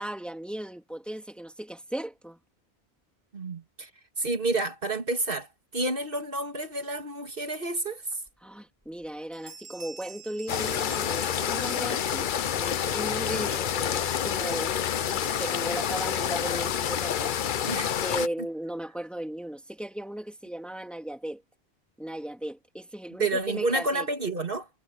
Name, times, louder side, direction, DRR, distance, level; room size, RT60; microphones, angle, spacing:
voice 1, 0.0-2.4 8.4-12.3 12.5-14.7 15.1-17.5 18.0-21.4 22.0-24.1, right 1 dB, ahead, 2.4 m, -36 dB
voice 2, 3.3-3.9 4.2-8.2 17.7-18.3 23.2-24.7, right 2 dB, 60° right, 2.5 m, -30 dB
Bell, 8.3-8.4 8.8-9.1 9.3-12.5, right 4 dB, 15° right, 5.0 m, -47 dB
sound 1, 10.5-18.3, left 9 dB, 55° left, 0.7 m, -28 dB
omnidirectional pair, 1.0 m